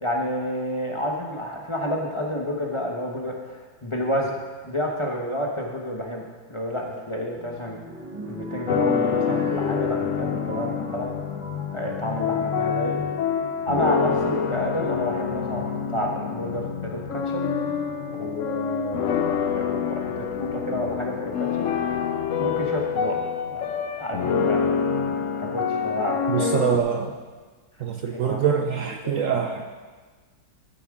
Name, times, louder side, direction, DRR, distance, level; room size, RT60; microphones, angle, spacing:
voice 1, 0.0-4.3 4.6-6.2 6.5-7.8 8.2-11.1 11.7-13.1 13.6-17.4 18.1-21.7 22.4-23.2 23.5-23.6 24.0-24.7 25.4-26.5 28.1-28.4 29.0-29.2, equal, 25° left, -1 dB, 0.8 m, -29 dB
sound 1, 6.8-12.4 13.1-13.6 14.8-14.9 15.6-15.9 18.1-18.7 19.4-19.5 19.7-19.8, equal, 50° right, 3.0 m, -39 dB
sound 2, 8.7-26.8, left 7 dB, 60° left, 0.8 m, -27 dB
voice 2, 26.3-27.1 27.8-29.7, right 7 dB, 70° right, 4 dB, 0.7 m, -24 dB
14.0 x 8.7 x 3.6 m, 1.4 s
omnidirectional pair, 2.0 m